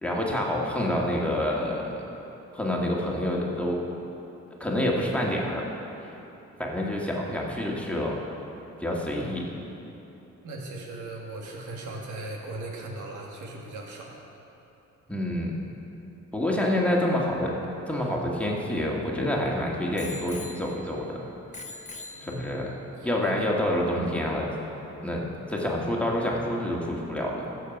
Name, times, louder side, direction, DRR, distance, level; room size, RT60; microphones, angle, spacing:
voice 1, 0.0-1.9 2.5-3.8 4.6-5.6 6.6-8.2 8.8-9.5 15.1-15.5 16.3-17.5 17.9-21.3 22.2-22.7 23.0-24.5 25.0-25.2 25.5-27.5, left 1 dB, 5° left, -3 dB, 1.8 m, -27 dB
voice 2, 10.4-14.2 22.1-22.7 23.0-23.5, right 2 dB, 80° right, -1 dB, 1.9 m, -38 dB
Bicycle bell, 17.7-19.3 20.0-21.1 21.5-22.8 23.5-23.6, left 3 dB, 25° left, 1.0 m, -44 dB
14.0 x 6.7 x 5.3 m, 3.0 s
cardioid pair, 90°, 30 cm